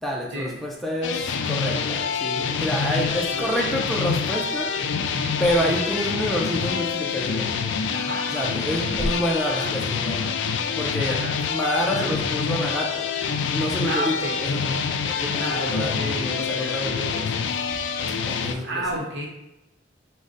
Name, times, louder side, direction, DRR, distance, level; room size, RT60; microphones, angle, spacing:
voice 1, 0.0-4.8 5.4-7.5 8.3-10.3 10.8-11.2 11.5-13.1 13.5-17.3 18.3-19.0, equal, ahead, -2 dB, 0.4 m, -28 dB
sound 1, 1.0-18.5, left 6 dB, 70° left, 0.3 m, -26 dB
voice 2, 2.6-3.6 7.9-8.3 8.7-9.0 9.5-9.7 10.8-11.4 11.9-12.1 13.8-14.4 15.3-17.0 18.6-19.3, right 1 dB, 70° right, -1 dB, 0.9 m, -32 dB
4.8 x 2.1 x 3.9 m, 0.94 s
head